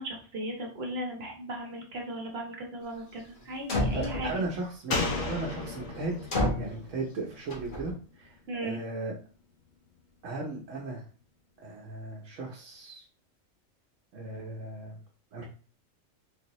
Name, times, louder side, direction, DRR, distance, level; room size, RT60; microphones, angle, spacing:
voice 1, 0.0-4.4 5.4-5.5 8.5-8.8, equal, 55° right, 1 dB, 1.1 m, -37 dB
sound 1, 3.4-3.5 3.7-4.5 6.3-6.8 7.5-7.9, left 1 dB, 45° left, 1.2 m, -29 dB
voice 2, 3.9-6.2 6.6-8.3 8.6-9.1 10.2-11.0 11.6-13.0 14.1-15.0 15.3-15.4, right 3 dB, 80° right, -2 dB, 1.1 m, -36 dB
Slam, 4.9-8.4 8.7-8.8, left 3 dB, 85° left, 1.1 m, -35 dB
3.8 x 2.7 x 2.9 m, 0.38 s
omnidirectional pair, 1.3 m